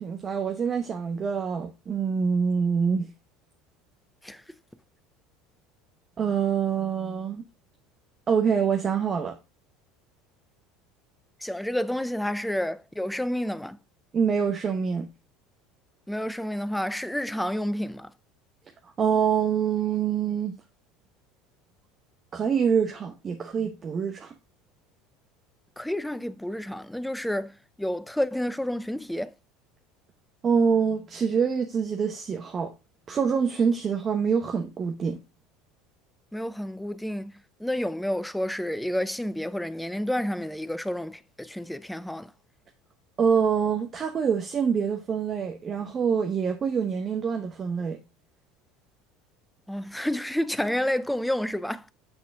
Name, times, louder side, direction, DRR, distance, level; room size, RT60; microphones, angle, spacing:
voice 1, 0.0-3.1 6.2-7.4 8.3-9.3 14.1-15.1 19.0-20.5 22.3-24.3 30.4-32.7 33.1-35.2 43.2-48.0, right 6 dB, 35° right, 1.0 m, -25 dB
voice 2, 11.4-13.8 16.1-18.1 25.8-29.3 36.3-42.3 49.7-51.9, left 1 dB, 5° left, 0.5 m, -30 dB
8.1 x 4.2 x 3.5 m
hypercardioid pair, 70°, 0 cm